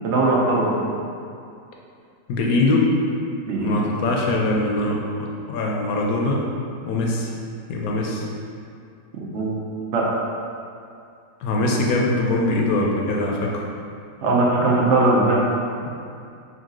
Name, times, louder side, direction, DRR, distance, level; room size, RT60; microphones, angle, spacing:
voice 1, 0.0-0.8 3.5-3.8 9.3-9.5 9.9-10.1 14.2-15.4, right 2 dB, 60° right, -3 dB, 0.8 m, -19 dB
voice 2, 2.3-2.9 3.6-5.0 5.5-6.4 6.9-7.3 7.7-8.3 11.4-13.7, left 2 dB, 75° left, -1 dB, 1.0 m, -22 dB
3.8 x 2.8 x 3.6 m, 2.4 s
omnidirectional pair, 1.6 m